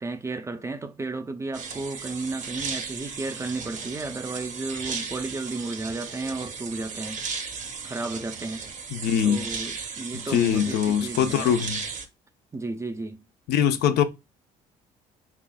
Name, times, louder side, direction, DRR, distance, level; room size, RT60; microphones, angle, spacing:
voice 1, 0.0-7.3 7.8-8.7 9.2-11.5 12.5-13.3, right 3 dB, 15° right, 0.4 m, -33 dB
sound 1, 1.5-12.1, right 5 dB, 45° right, 0.7 m, -35 dB
voice 2, 8.9-9.4 10.3-11.8 13.5-14.0, left 9 dB, 75° left, 0.6 m, -22 dB
3.7 x 3.5 x 2.2 m
cardioid pair, 110°, 17 cm